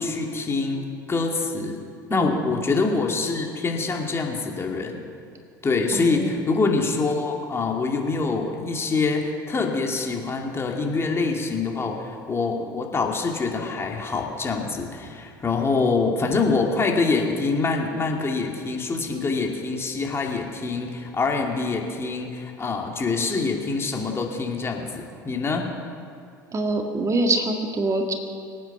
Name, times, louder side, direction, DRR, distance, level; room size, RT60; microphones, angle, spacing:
voice 1, 0.0-1.8 2.1-5.0 5.6-25.7, left 4 dB, 25° left, 1 dB, 2.4 m, -25 dB
voice 2, 2.1-2.5 5.9-6.4 26.5-28.1, right 2 dB, 30° right, 4 dB, 1.8 m, -25 dB
24.5 x 9.2 x 5.9 m, 2.4 s
figure-of-eight pair, 70°, 11 cm